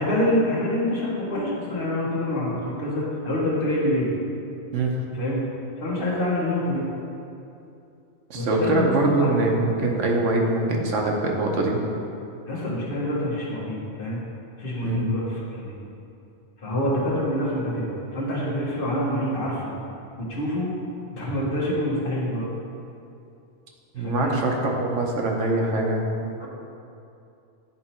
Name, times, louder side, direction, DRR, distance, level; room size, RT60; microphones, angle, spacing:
voice 1, 0.0-4.1 5.1-5.4 5.8-6.9 8.3-9.4 12.5-14.2 14.6-15.7 16.6-19.7 20.3-20.7 21.1-22.4 24.0-24.3 26.4-26.5, left 1 dB, 50° left, -6 dB, 1.6 m, -26 dB
voice 2, 8.3-11.8 14.8-15.1 23.9-26.5, right 2 dB, 80° right, 0 dB, 1.2 m, -23 dB
8.8 x 3.8 x 4.4 m, 2.6 s
omnidirectional pair, 1.2 m